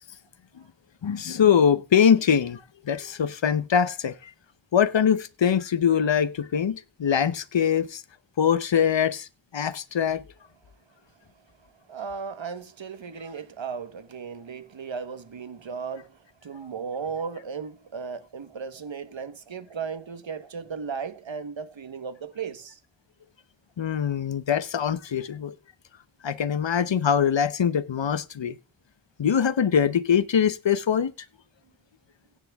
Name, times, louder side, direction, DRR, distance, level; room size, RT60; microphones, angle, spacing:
voice 1, 1.0-4.3 4.7-8.0 8.4-10.2 23.8-25.5 26.2-28.6 29.2-31.1, left 8 dB, 75° left, 0.9 m, -23 dB
voice 2, 11.9-22.8, right 6 dB, 90° right, 1.3 m, -36 dB
16.5 x 10.0 x 3.5 m
wide cardioid pair, 55°, 45 cm